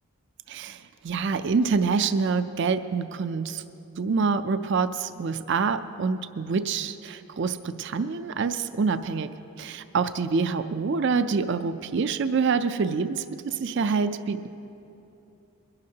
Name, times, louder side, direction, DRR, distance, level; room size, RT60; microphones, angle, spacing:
voice 1, 0.5-3.6 4.0-9.3 9.6-14.5, right 5 dB, 55° right, 11 dB, 0.4 m, -26 dB
22.5 x 11.5 x 2.8 m, 2.9 s
head